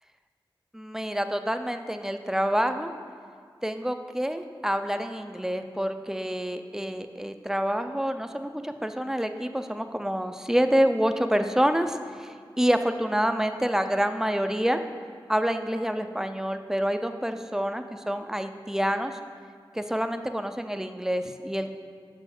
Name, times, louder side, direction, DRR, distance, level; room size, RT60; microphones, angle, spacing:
voice 1, 0.7-2.9 3.6-14.8 15.3-19.2 19.7-21.7, equal, 5° right, 8 dB, 0.5 m, -27 dB
6.3 x 5.3 x 6.5 m, 2.2 s
wide cardioid pair, 45°, 9 cm